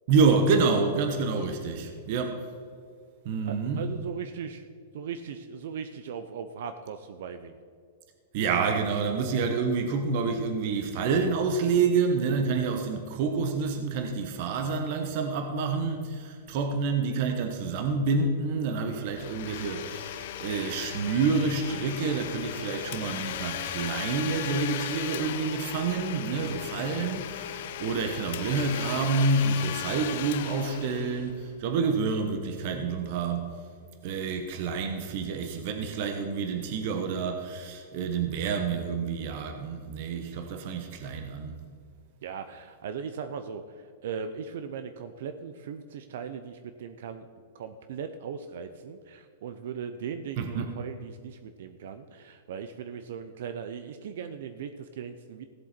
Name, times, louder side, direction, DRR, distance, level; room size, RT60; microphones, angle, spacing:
voice 1, 0.1-2.4 3.2-3.8 8.3-33.6 34.0-41.6 50.4-50.7, right 4 dB, 50° right, 5 dB, 1.0 m, -28 dB
voice 2, 3.5-4.7 4.9-7.6 42.2-47.3 47.5-55.5, right 7 dB, 65° right, 9 dB, 0.6 m, -38 dB
Domestic sounds home sounds, 19.1-31.6, left 11 dB, 60° left, 0.6 m, -37 dB
16.5 x 7.8 x 4.4 m, 2.2 s
supercardioid pair, 150°, 0 cm